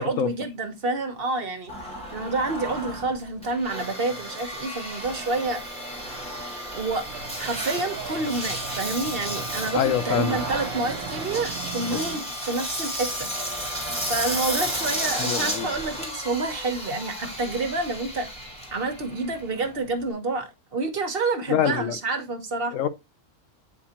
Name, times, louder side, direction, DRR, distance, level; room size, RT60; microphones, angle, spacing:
voice 1, 0.0-1.7 2.1-5.6 6.7-7.1 7.4-13.3 14.1-18.3 18.7-22.7, right 3 dB, 50° right, 1.1 m, -28 dB
Engine, 1.7-20.1, equal, 5° left, 2.0 m, -33 dB
sound 1, 7.1-12.2, right 9 dB, 90° right, 1.0 m, -38 dB
voice 2, 9.7-10.4 11.9-12.0 15.2-15.7 21.5-22.0 22.7-22.9, left 9 dB, 75° left, 1.1 m, -25 dB
8.5 x 4.3 x 2.8 m
omnidirectional pair, 1.3 m